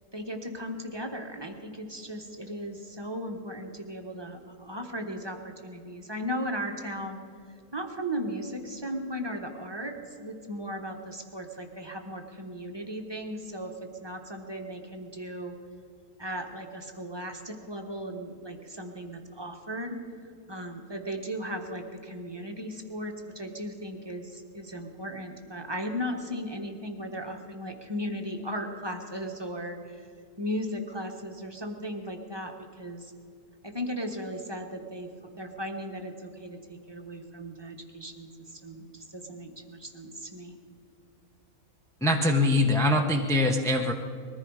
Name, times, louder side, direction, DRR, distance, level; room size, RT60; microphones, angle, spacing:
voice 1, 0.1-7.2 7.7-15.6 16.2-20.0 20.2-30.1 30.4-33.1 33.6-40.5, equal, 20° right, 4 dB, 1.2 m, -36 dB
voice 2, 42.0-43.9, left 1 dB, 5° left, 2 dB, 0.5 m, -23 dB
21.0 x 14.5 x 4.8 m, 2.4 s
omnidirectional pair, 1.5 m